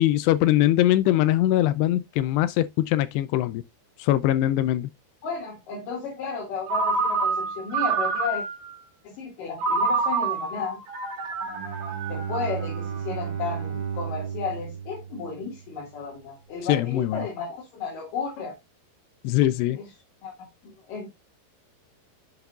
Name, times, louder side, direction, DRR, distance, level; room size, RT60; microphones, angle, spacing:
voice 1, 0.0-3.6 4.0-4.9 16.7-17.3 19.2-19.8, left 14 dB, 85° left, 2.5 m, -22 dB
voice 2, 5.2-8.4 9.0-10.8 12.1-18.5 19.8-19.9 20.2-21.1, left 5 dB, 55° left, 3.2 m, -33 dB
Ringtone, 6.7-8.8 9.6-12.9, right 4 dB, 55° right, 4.0 m, -27 dB
Bowed string instrument, 11.4-15.9, right 7 dB, 75° right, 1.3 m, -34 dB
8.0 x 7.1 x 2.4 m
omnidirectional pair, 5.2 m